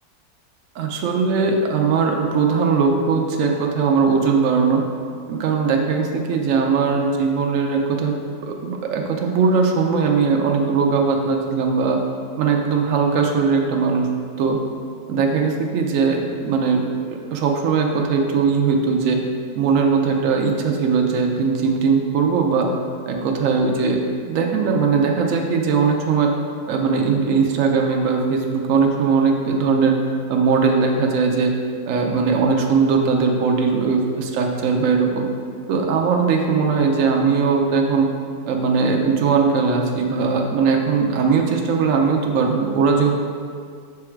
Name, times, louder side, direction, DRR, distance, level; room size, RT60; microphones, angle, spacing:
voice 1, 0.7-4.8 5.3-8.1 8.4-12.0 12.4-14.1 14.4-14.6 15.1-16.8 17.1-19.2 19.6-22.7 23.1-24.0 24.3-26.3 26.7-29.9 30.3-31.5 31.9-35.3 35.7-38.1 38.5-43.1, right 5 dB, 65° right, 1 dB, 0.8 m, -19 dB
6.8 x 3.6 x 4.5 m, 2.1 s
omnidirectional pair, 2.0 m